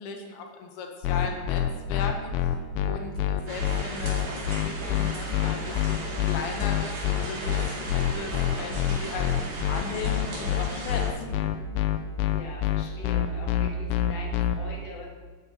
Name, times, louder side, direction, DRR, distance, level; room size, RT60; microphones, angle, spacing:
voice 1, 0.0-2.3 2.9-11.4, left 4 dB, 75° left, 4 dB, 3.0 m, -37 dB
sound 1, 1.0-14.6, left 12 dB, 90° left, 2.8 m, -26 dB
sound 2, 3.5-11.1, right 1 dB, 65° right, 4.0 m, -37 dB
voice 2, 11.2-15.1, left 2 dB, 50° left, 0 dB, 2.2 m, -43 dB
11.0 x 11.0 x 4.3 m, 1.5 s
omnidirectional pair, 4.8 m